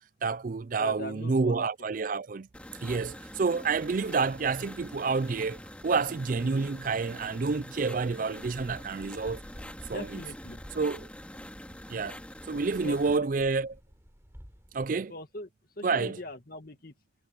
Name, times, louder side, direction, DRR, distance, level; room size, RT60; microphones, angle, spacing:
voice 1, 0.2-2.5 2.8-9.4 9.9-10.2 10.8-11.1 11.9-12.2 12.5-13.8 14.7-15.1 15.8-16.2, right 4 dB, 45° right, 0.4 m, -29 dB
voice 2, 0.8-1.7 6.4-6.6 9.9-10.6 12.5-13.2 15.1-15.5 15.8-16.9, left 1 dB, 50° left, 2.1 m, -41 dB
sound 1, 2.5-13.2, left 1 dB, 5° left, 2.2 m, -45 dB
sound 2, 8.4-14.9, equal, 15° right, 5.0 m, -51 dB
head